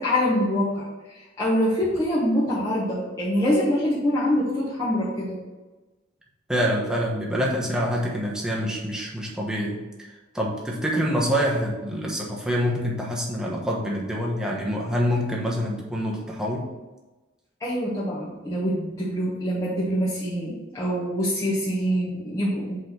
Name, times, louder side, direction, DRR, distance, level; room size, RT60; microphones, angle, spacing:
voice 1, 0.0-5.4 17.6-22.8, equal, 15° left, -9 dB, 1.2 m, -25 dB
voice 2, 6.5-10.1 10.3-16.7, equal, 5° right, -3 dB, 1.1 m, -26 dB
5.0 x 4.1 x 5.9 m, 1.2 s
head